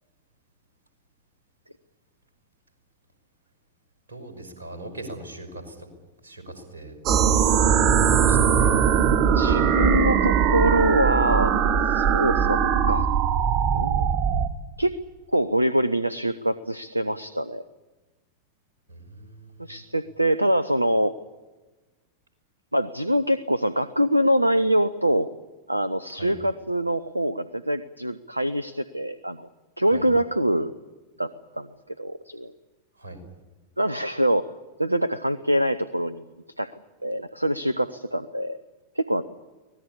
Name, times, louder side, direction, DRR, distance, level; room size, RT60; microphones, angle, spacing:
voice 1, 4.1-5.8 6.2-8.5 18.9-19.8 26.1-26.4 29.9-30.1 33.0-33.2, right 2 dB, 70° right, 6 dB, 5.7 m, -41 dB
sound 1, 7.1-14.5, right 7 dB, 40° right, 1.5 m, -20 dB
voice 2, 9.3-11.5 11.8-13.1 13.7-14.1 14.8-15.0 15.3-17.6 19.6-21.2 22.7-25.3 25.7-29.5 29.8-30.7 31.2-31.7 32.0-32.5 33.8-34.5 34.8-36.2 36.6-36.7 37.0-38.6 39.0-39.2, right 1 dB, 85° right, 16 dB, 0.7 m, -24 dB
24.5 x 18.5 x 8.4 m, 1.2 s
figure-of-eight pair, 90°, 0 cm